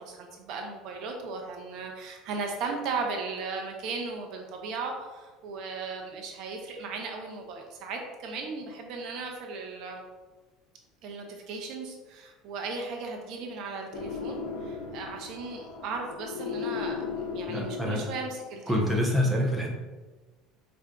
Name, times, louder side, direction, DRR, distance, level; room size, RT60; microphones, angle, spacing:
voice 1, 0.0-10.0 11.0-19.0, right 4 dB, 50° right, 2 dB, 0.5 m, -36 dB
sound 1, 13.9-18.5, left 6 dB, 75° left, 0.4 m, -36 dB
voice 2, 17.5-18.0 18.7-19.7, equal, ahead, -3 dB, 0.5 m, -26 dB
4.7 x 2.5 x 2.2 m, 1.2 s
cardioid pair, 170°, 0 cm